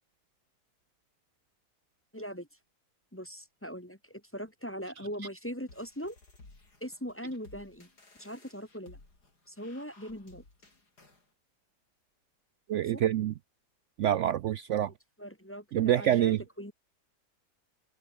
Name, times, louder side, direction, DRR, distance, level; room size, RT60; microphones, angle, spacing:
voice 1, 2.1-2.5 3.1-6.2 6.8-7.9 8.2-9.0 9.5-10.4 12.9-13.0 15.2-16.7, equal, 10° left, 1.2 m, -40 dB
sound 1, 5.7-11.3, left 3 dB, 65° left, 5.7 m, -57 dB
voice 2, 12.7-13.3 14.0-14.9 15.7-16.4, right 11 dB, 85° right, 0.6 m, -26 dB
omnidirectional pair, 1.9 m